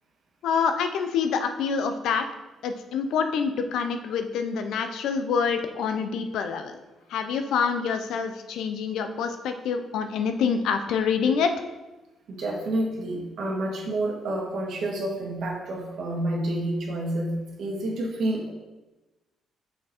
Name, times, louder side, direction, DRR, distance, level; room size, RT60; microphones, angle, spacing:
voice 1, 0.4-2.2 2.6-6.8 7.1-11.5, left 6 dB, 80° left, 7 dB, 0.6 m, -26 dB
voice 2, 12.3-18.5, right 1 dB, 65° right, -1 dB, 1.6 m, -29 dB
6.0 x 4.5 x 4.3 m, 1.1 s
cardioid pair, 90°, 0 cm